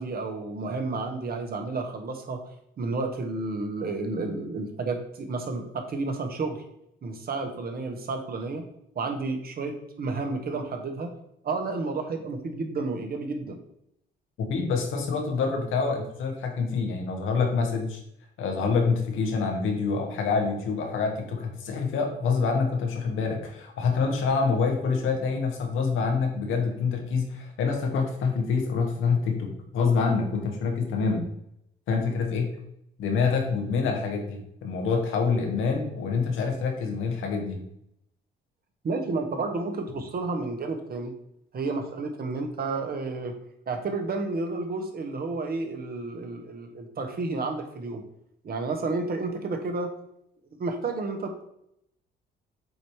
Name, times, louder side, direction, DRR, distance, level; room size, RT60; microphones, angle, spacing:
voice 1, 0.0-2.4 2.8-6.6 7.0-8.6 8.9-11.1 11.4-13.6 38.8-41.1 41.5-43.3 43.7-48.0 48.4-50.0 50.6-51.4, right 3 dB, 50° right, 5 dB, 1.4 m, -31 dB
voice 2, 14.4-18.0 18.4-31.3 31.9-32.5 33.0-37.6, left 5 dB, 85° left, 2 dB, 1.5 m, -26 dB
7.9 x 3.0 x 4.9 m, 0.76 s
cardioid pair, 90°, 20 cm